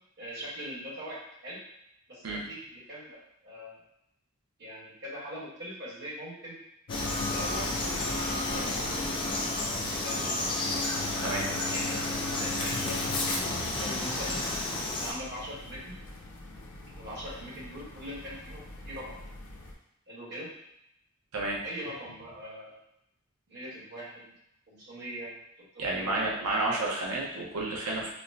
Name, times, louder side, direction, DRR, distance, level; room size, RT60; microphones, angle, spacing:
voice 1, 0.2-1.6 2.1-3.8 4.6-6.6 7.2-7.7 8.3-9.4 10.0-10.5 11.7-14.4 14.9-15.9 17.0-19.1 20.1-20.5 21.6-22.8 23.5-24.3 24.7-25.3 25.6-26.2 26.4-26.8, equal, 50° right, -7 dB, 1.3 m, -42 dB
sound 1, 6.9-19.7, left 2 dB, 70° left, 0.5 m, -38 dB
Frog, 6.9-15.1, left 2 dB, 20° left, 0.4 m, -32 dB
voice 2, 25.8-28.1, right 2 dB, 75° right, -3 dB, 0.8 m, -30 dB
4.3 x 2.1 x 2.6 m, 0.80 s
head